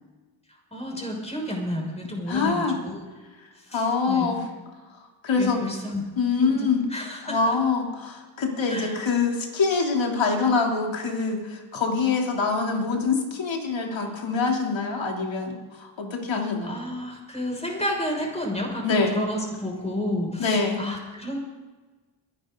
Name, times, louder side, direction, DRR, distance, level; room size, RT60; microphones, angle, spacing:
voice 1, 0.7-3.0 3.6-4.3 5.4-6.0 6.4-7.5 8.7-9.0 16.6-21.4, left 1 dB, 15° left, 0 dB, 6.1 m, -31 dB
voice 2, 2.3-2.8 3.4-4.4 4.9-5.6 6.2-6.9 7.2-16.8 18.8-19.2 20.4-20.8, left 4 dB, 70° left, 1 dB, 3.3 m, -25 dB
23.0 x 11.5 x 3.9 m, 1.3 s
cardioid pair, 65°, 48 cm